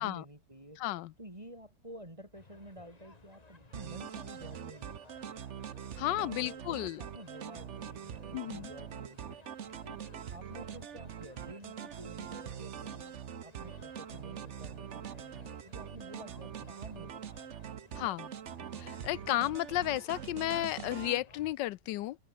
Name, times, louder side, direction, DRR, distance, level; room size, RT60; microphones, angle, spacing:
voice 1, 0.0-0.8 1.2-5.5 6.2-9.4 9.8-18.0, equal, 15° right, 4.7 m, -51 dB
voice 2, 0.8-1.1 6.0-7.0 8.3-8.7 17.9-18.3 18.8-22.2, left 15 dB, 85° left, 1.3 m, -33 dB
sound 1, 2.3-21.5, left 3 dB, 20° left, 1.9 m, -58 dB
sound 2, 3.7-21.2, right 8 dB, 50° right, 1.0 m, -44 dB
omnidirectional pair, 1.9 m